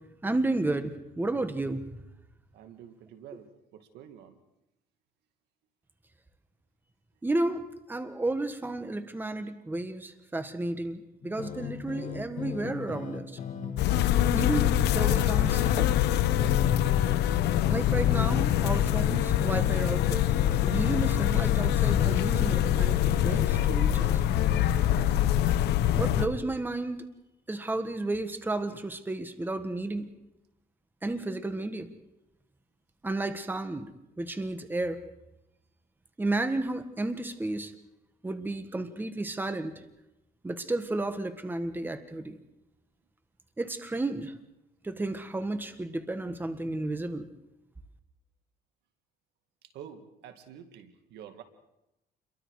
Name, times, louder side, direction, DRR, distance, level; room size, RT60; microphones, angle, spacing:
voice 1, 0.2-1.9 7.2-13.3 14.3-15.9 17.7-20.3 20.7-24.2 25.9-27.0 27.5-30.1 31.0-31.9 33.0-33.9 34.2-35.0 36.2-37.7 38.2-39.8 40.4-42.4 43.6-44.3 44.8-47.3, right 2 dB, 10° right, 9 dB, 1.5 m, -32 dB
voice 2, 2.5-4.4 49.7-51.4, right 9 dB, 80° right, 7 dB, 2.1 m, -48 dB
sound 1, 11.2-26.4, left 7 dB, 50° left, 2.8 m, -37 dB
sound 2, 13.8-26.3, left 11 dB, 80° left, 1.1 m, -24 dB
29.0 x 23.0 x 4.9 m, 0.92 s
cardioid pair, 110°, 17 cm